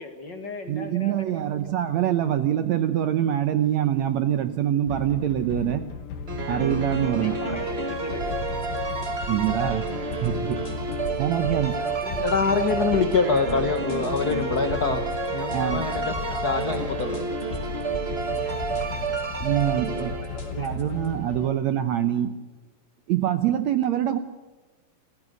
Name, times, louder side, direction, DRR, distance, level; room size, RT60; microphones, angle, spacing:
voice 1, 0.0-1.6 6.9-8.4 11.7-13.1 15.3-16.5 18.4-18.6 19.7-20.7, left 3 dB, 40° left, 6 dB, 1.9 m, -39 dB
voice 2, 0.7-5.9 6.5-7.4 9.3-9.9 10.2-10.6 11.2-11.8 15.5-15.9 19.4-20.1 20.6-22.4 23.1-24.2, right 11 dB, 70° right, 10 dB, 1.8 m, -24 dB
sound 1, 4.9-21.5, left 6 dB, 90° left, 4.3 m, -36 dB
sound 2, 6.3-20.6, right 4 dB, 35° right, 1.0 m, -30 dB
sound 3, 8.2-21.1, left 1 dB, 20° left, 2.7 m, -39 dB
voice 3, 12.2-15.0 15.3-16.1 16.4-17.2, left 4 dB, 70° left, 7 dB, 0.9 m, -24 dB
28.5 x 14.5 x 6.6 m, 1.3 s
omnidirectional pair, 4.0 m